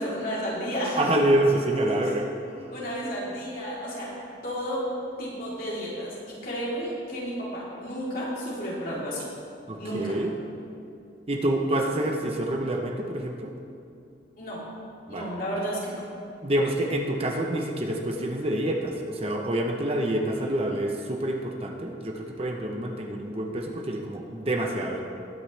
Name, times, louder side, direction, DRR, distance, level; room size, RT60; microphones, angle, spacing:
voice 1, 0.0-1.1 2.0-2.1 2.7-4.1 4.4-4.8 5.2-9.2 9.8-10.1 14.4-14.6 15.1-16.0, equal, 50° left, -7 dB, 3.6 m, -32 dB
voice 2, 1.0-2.3 9.7-10.3 11.3-13.5 15.1-15.3 16.4-25.0, right 1 dB, 35° right, 1 dB, 1.0 m, -27 dB
20.0 x 9.3 x 3.4 m, 2.5 s
head